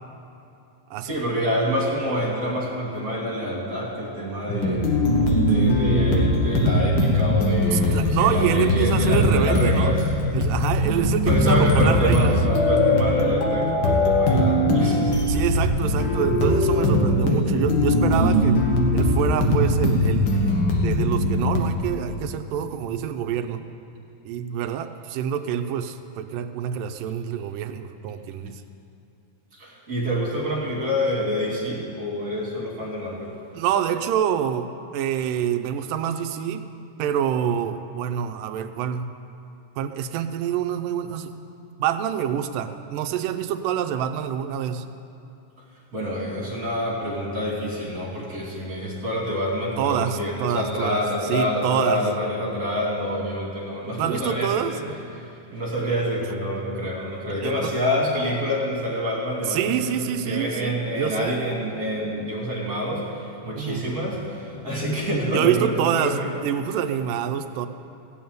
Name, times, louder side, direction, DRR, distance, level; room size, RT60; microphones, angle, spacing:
voice 1, 1.0-4.9 5.4-10.1 11.2-15.4 29.5-33.3 45.9-66.4, equal, 30° right, -4 dB, 3.0 m, -27 dB
sound 1, 4.5-21.6, left 1 dB, 55° left, 1.3 m, -21 dB
voice 2, 7.7-10.0 10.3-12.4 15.3-18.6 18.9-23.6 24.3-28.6 33.5-36.6 37.0-39.1 39.8-41.4 41.8-44.8 49.8-52.0 54.0-54.7 57.4-57.7 59.5-61.4 63.6-63.8 65.3-67.7, right 9 dB, 85° right, 8 dB, 2.3 m, -26 dB
16.0 x 7.1 x 9.3 m, 2.7 s
omnidirectional pair, 3.8 m